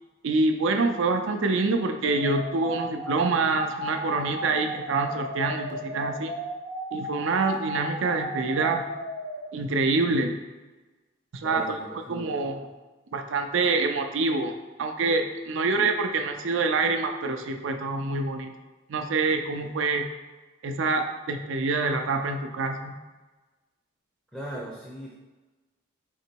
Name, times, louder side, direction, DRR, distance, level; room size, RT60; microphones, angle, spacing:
voice 1, 0.2-6.4 6.9-8.9 9.5-10.4 11.3-11.8 12.1-12.6 13.1-18.5 18.9-20.1 20.6-22.9, right 3 dB, 70° right, 6 dB, 0.5 m, -26 dB
sound 1, 2.0-9.4, equal, 85° left, 1.0 m, -35 dB
voice 2, 11.4-12.3 19.6-19.7 24.3-25.1, right 1 dB, ahead, -4 dB, 0.5 m, -38 dB
3.9 x 2.9 x 4.5 m, 1.2 s
head